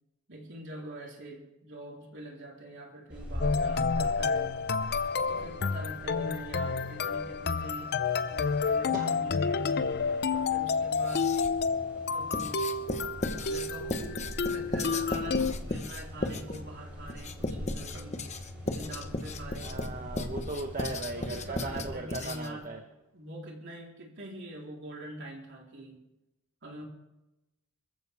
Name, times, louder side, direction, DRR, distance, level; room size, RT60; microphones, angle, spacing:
voice 1, 0.3-4.6 5.3-8.0 8.3-9.7 10.3-11.4 12.0-12.7 13.4-20.1 21.1-22.8 23.1-26.0 26.6-26.8, right 1 dB, 55° right, -1 dB, 3.8 m, -44 dB
sound 1, 3.1-21.9, equal, 5° right, 7.9 m, -43 dB
sound 2, 3.4-15.5, left 5 dB, 45° left, 0.6 m, -30 dB
Writing, 10.9-11.7 12.3-22.6, left 2 dB, 30° left, 1.1 m, -36 dB
voice 2, 19.6-22.8, right 2 dB, 35° right, 3 dB, 1.1 m, -37 dB
25.5 x 14.5 x 3.5 m, 0.95 s
head